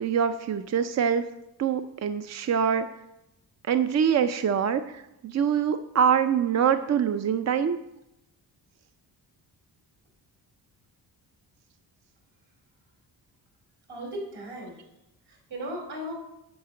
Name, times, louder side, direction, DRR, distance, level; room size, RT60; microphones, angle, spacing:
voice 1, 0.0-1.2 1.6-2.9 3.7-7.8, right 7 dB, 40° right, 9 dB, 0.5 m, -24 dB
voice 2, 13.9-14.8 15.3-16.2, equal, 75° right, 0 dB, 4.2 m, -36 dB
9.5 x 5.8 x 7.6 m, 0.89 s
cardioid pair, 100°, 41 cm